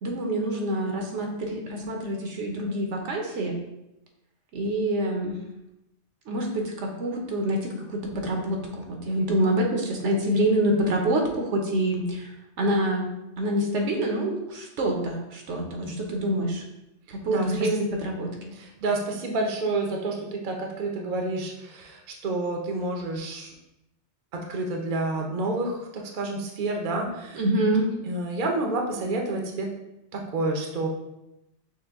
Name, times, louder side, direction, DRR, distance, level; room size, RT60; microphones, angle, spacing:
voice 1, 0.0-3.6 4.5-5.3 6.3-13.1 13.4-16.6 17.1-18.5 27.3-27.9, right 1 dB, 70° right, 1 dB, 1.0 m, -26 dB
voice 2, 9.1-9.5 15.8-16.1 17.3-17.7 18.5-23.5 24.3-27.4 28.1-29.7 30.1-30.9, right 2 dB, 50° right, 1 dB, 0.7 m, -29 dB
6.1 x 2.1 x 3.5 m, 0.90 s
omnidirectional pair, 1.3 m